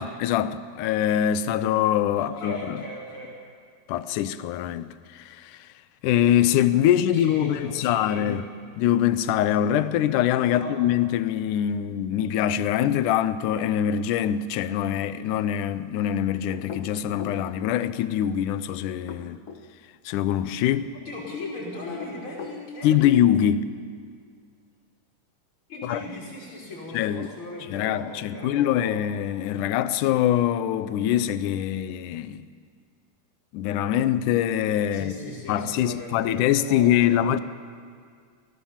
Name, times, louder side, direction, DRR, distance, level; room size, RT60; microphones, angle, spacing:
voice 1, 0.0-2.8 3.9-5.6 6.0-8.4 8.8-19.4 20.1-20.9 22.8-23.7 25.8-26.0 26.9-27.3 27.7-32.4 33.5-35.1 35.5-37.4, left 10 dB, 75° left, 2.1 m, -24 dB
voice 2, 2.1-3.3 7.1-8.4 10.5-10.7 21.0-23.2 25.7-29.0 34.9-37.2, left 2 dB, 35° left, 6.5 m, -37 dB
sound 1, 16.5-17.4 18.9-19.7 21.8-22.6, left 5 dB, 60° left, 1.7 m, -39 dB
28.5 x 19.0 x 7.3 m
omnidirectional pair, 4.1 m